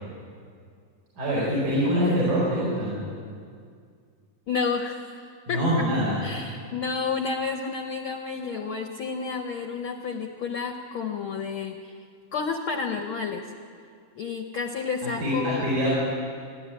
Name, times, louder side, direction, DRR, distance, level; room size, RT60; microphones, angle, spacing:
voice 1, 1.2-3.0 5.5-6.2 15.0-15.9, equal, 80° right, -6 dB, 6.1 m, -24 dB
voice 2, 4.5-5.9 6.2-12.0 12.3-13.5 14.2-15.7, left 5 dB, 70° left, 5 dB, 1.2 m, -30 dB
26.5 x 11.0 x 8.8 m, 2.2 s
omnidirectional pair, 3.5 m